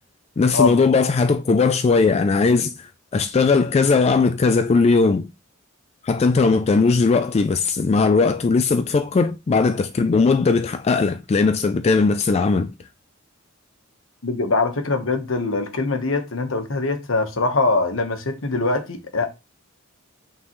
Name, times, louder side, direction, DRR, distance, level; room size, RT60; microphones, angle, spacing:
voice 1, 0.4-5.3 6.0-12.7, left 4 dB, 30° left, 0.3 m, -18 dB
voice 2, 14.2-19.3, left 3 dB, 70° left, 1.2 m, -22 dB
8.4 x 3.8 x 3.1 m
head